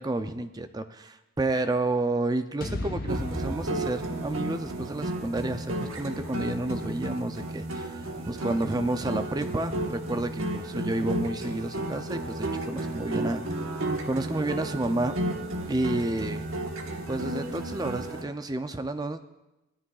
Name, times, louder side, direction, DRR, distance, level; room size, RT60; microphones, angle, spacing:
voice 1, 0.0-13.4 14.0-15.1 15.7-16.5 17.1-19.2, right 2 dB, 15° right, 9 dB, 0.4 m, -30 dB
sound 1, 2.6-6.8, left 1 dB, 40° left, 0.9 m, -38 dB
sound 2, 3.1-18.2, right 1 dB, 65° right, 1.3 m, -33 dB
17.0 x 12.5 x 2.4 m, 0.97 s
head